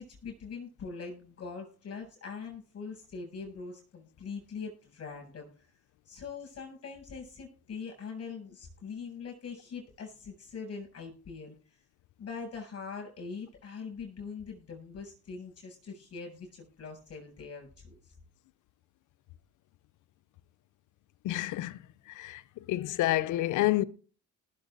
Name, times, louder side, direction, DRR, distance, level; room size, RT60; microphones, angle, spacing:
voice 1, 0.0-5.5 6.1-11.5 12.2-18.0, left 5 dB, 55° left, 7.5 m, -42 dB
voice 2, 21.2-21.8 22.2-22.4 22.7-23.8, left 16 dB, 85° left, 0.7 m, -28 dB
19.0 x 7.1 x 3.9 m
cardioid pair, 90°, 30 cm